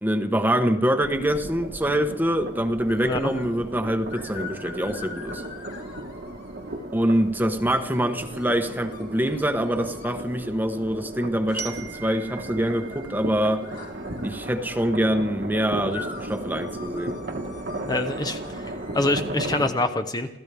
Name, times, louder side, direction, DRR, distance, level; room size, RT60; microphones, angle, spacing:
voice 1, 0.0-5.4 6.9-13.6 14.2-17.2, right 1 dB, 10° right, 7 dB, 1.1 m, -25 dB
sound 1, 1.0-19.7, right 1 dB, 55° right, 1.4 m, -36 dB
sound 2, 2.9-3.6 4.1-6.9 7.6-10.3 11.5-14.9 15.9-19.0, left 5 dB, 55° left, 4.4 m, -44 dB
Glockenspiel, 11.6-14.4, right 8 dB, 85° right, 2.3 m, -42 dB
voice 2, 17.9-20.3, left 2 dB, 20° left, 6 dB, 0.9 m, -26 dB
28.0 x 15.0 x 3.5 m, 0.91 s
head